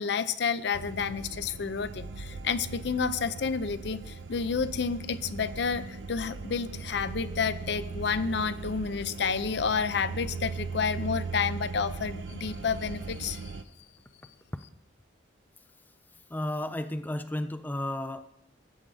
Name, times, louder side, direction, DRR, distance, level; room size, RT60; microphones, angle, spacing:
voice 1, 0.0-13.4, left 5 dB, 60° left, 14 dB, 0.5 m, -30 dB
sound 1, 0.7-13.6, right 4 dB, 70° right, 0.6 m, -39 dB
voice 2, 16.1-18.3, left 1 dB, 10° left, 9 dB, 0.4 m, -33 dB
13.5 x 8.8 x 4.9 m, 0.86 s
head